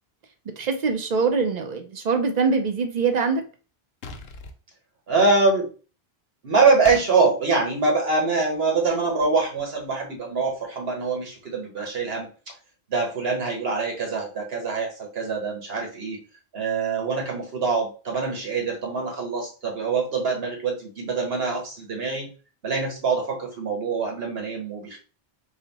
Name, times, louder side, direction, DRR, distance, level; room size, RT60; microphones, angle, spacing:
voice 1, 0.6-3.4, right 5 dB, 50° right, 5 dB, 0.6 m, -23 dB
sound 1, 4.0-4.6 6.8-7.1, left 4 dB, 75° left, 0.8 m, -37 dB
voice 2, 5.1-5.7 6.4-12.3 12.9-16.2 16.5-22.3 22.6-25.0, right 4 dB, 70° right, 1 dB, 1.3 m, -24 dB
4.0 x 2.2 x 4.0 m, 0.37 s
omnidirectional pair, 1.1 m